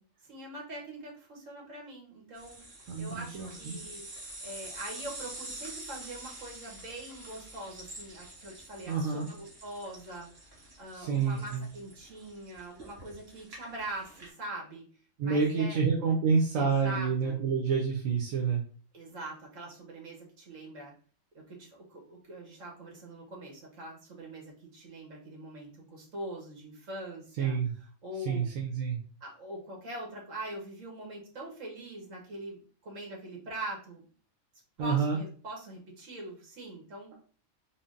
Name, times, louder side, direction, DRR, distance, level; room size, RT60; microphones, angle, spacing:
voice 1, 0.3-2.6 3.0-4.0 4.4-14.8 15.2-15.8 16.6-17.4 18.9-20.9 21.3-27.6 28.0-28.5 29.2-34.1 34.8-37.1, right 1 dB, 70° right, -1 dB, 1.5 m, -43 dB
sound 1, 2.3-14.3, right 1 dB, 50° right, 1.5 m, -47 dB
voice 2, 2.9-3.8 8.9-9.3 10.9-11.7 15.2-18.6 27.4-27.7 28.3-29.0 34.8-35.2, right 5 dB, 90° right, -1 dB, 1.1 m, -28 dB
3.8 x 2.0 x 3.6 m, 0.43 s
omnidirectional pair, 1.4 m